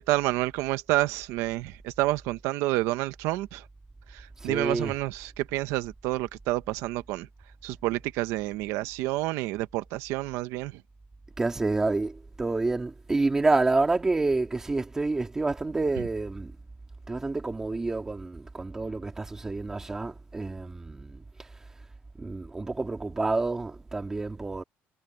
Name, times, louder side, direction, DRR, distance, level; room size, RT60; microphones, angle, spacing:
voice 1, 0.0-3.6 4.1-7.3 7.6-10.8, right 17 dB, 90° right, 0.9 m, -29 dB
voice 2, 4.4-4.9 11.4-16.5 17.1-21.2 22.2-24.6, right 3 dB, 10° right, 2.4 m, -28 dB
cardioid pair, 180°, 5 cm